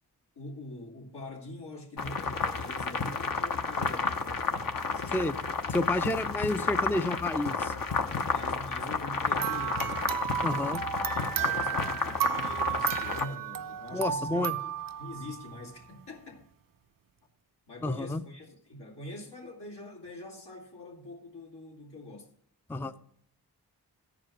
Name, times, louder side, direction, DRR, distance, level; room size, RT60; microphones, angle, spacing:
voice 1, 0.4-5.5 8.3-10.3 11.0-14.7 15.0-16.5 17.7-22.3 22.8-23.1, left 1 dB, 75° left, 2.5 m, -44 dB
sound 1, 2.0-13.2, left 4 dB, 55° left, 1.0 m, -31 dB
voice 2, 5.7-7.7 10.4-10.8 13.9-14.5 17.8-18.2 22.7-22.9, left 2 dB, 5° left, 0.5 m, -30 dB
sound 2, 9.4-15.8, right 10 dB, 55° right, 0.6 m, -33 dB
14.0 x 5.0 x 6.0 m
cardioid pair, 45°, 40 cm